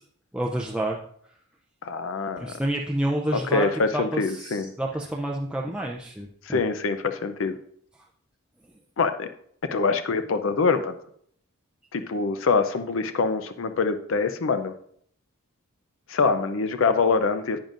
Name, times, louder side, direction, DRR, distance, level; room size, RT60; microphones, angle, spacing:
voice 1, 0.3-1.0 2.4-3.7 3.9-6.6, right 1 dB, 5° right, -1 dB, 0.4 m, -29 dB
voice 2, 1.8-2.5 3.3-4.7 6.5-7.6 9.0-9.3 9.7-11.0 11.9-14.7 16.1-17.6, left 4 dB, 60° left, 10 dB, 0.5 m, -24 dB
10.5 x 8.9 x 2.5 m, 0.65 s
head